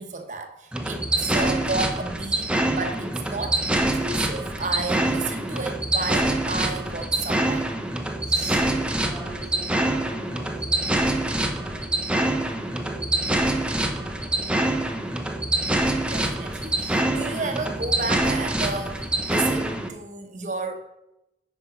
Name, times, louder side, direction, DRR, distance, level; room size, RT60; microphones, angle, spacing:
voice 1, 0.0-7.6 8.3-8.6 16.1-20.8, right 3 dB, 45° right, 5 dB, 0.9 m, -32 dB
sound 1, 0.7-19.9, right 1 dB, 5° right, 0.6 m, -25 dB
voice 2, 8.4-14.5, right 1 dB, 15° left, -7 dB, 2.6 m, -43 dB
9.5 x 5.4 x 4.9 m, 0.93 s
head